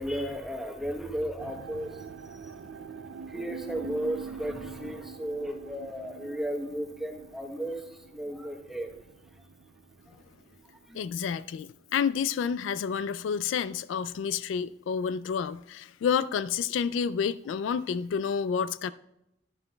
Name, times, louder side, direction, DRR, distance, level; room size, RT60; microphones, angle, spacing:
voice 1, 0.0-2.0 2.3-2.5 3.3-8.9 10.9-11.0, equal, ahead, 0.9 m, -34 dB
sound 1, 1.4-12.6 12.8-13.5 14.0-14.1, right 5 dB, 80° right, 0.4 m, -45 dB
voice 2, 10.9-18.9, left 7 dB, 80° left, 0.3 m, -29 dB
11.5 x 9.7 x 2.2 m
head